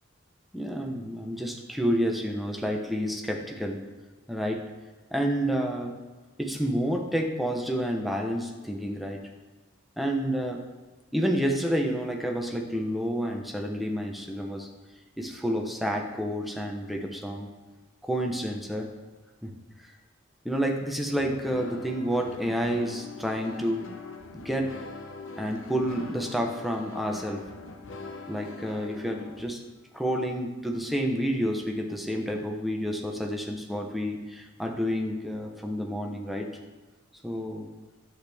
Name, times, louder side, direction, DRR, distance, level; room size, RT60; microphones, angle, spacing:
voice 1, 0.5-3.8 4.3-4.6 5.1-6.0 6.4-9.2 10.0-10.6 11.1-14.7 15.2-17.5 18.0-18.9 19.4-19.5 19.8-19.9 20.4-23.9 24.4-24.7 25.4-27.4 28.3-29.6 29.9-36.5 37.2-37.7, equal, ahead, 1 dB, 0.9 m, -29 dB
sound 1, 21.2-29.4, left 4 dB, 65° left, 0.7 m, -43 dB
11.0 x 8.0 x 3.5 m, 1.3 s
head